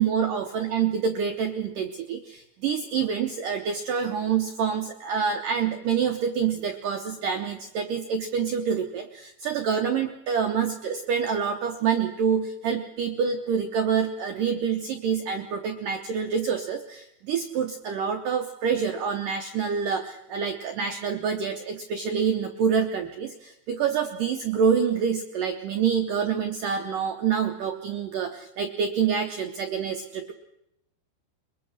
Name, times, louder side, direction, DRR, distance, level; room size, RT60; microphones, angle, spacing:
voice 1, 0.0-30.3, right 7 dB, 75° right, 5 dB, 2.0 m, -27 dB
22.5 x 21.5 x 6.5 m, 0.83 s
omnidirectional pair, 5.1 m